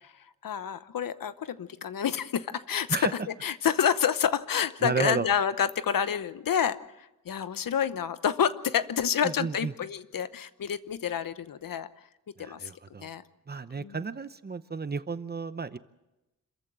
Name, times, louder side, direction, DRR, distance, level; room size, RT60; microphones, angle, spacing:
voice 1, 0.4-3.0 3.4-11.9 12.4-12.7 13.0-13.2 13.8-14.0, left 8 dB, 80° left, 14 dB, 0.9 m, -28 dB
voice 2, 4.8-5.3 9.2-9.7 12.4-13.1 13.5-15.8, right 4 dB, 30° right, 13 dB, 0.8 m, -32 dB
26.5 x 14.5 x 7.4 m, 0.96 s
wide cardioid pair, 140°, 33 cm